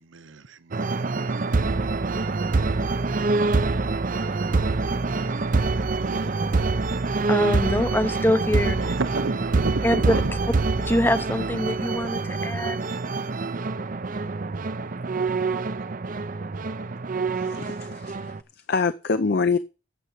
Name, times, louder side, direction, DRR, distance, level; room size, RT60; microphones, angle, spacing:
voice 1, 0.1-1.0 5.8-6.3 8.5-10.3, right 3 dB, 70° right, 0.8 m, -31 dB
sound 1, 0.7-18.4, right 3 dB, 40° right, 0.6 m, -25 dB
voice 2, 7.3-8.9 9.8-10.2 10.8-12.8, left 1 dB, 10° left, 0.6 m, -24 dB
voice 3, 17.3-18.3 18.7-19.6, left 4 dB, 50° left, 0.5 m, -25 dB
9.5 x 6.8 x 7.5 m
head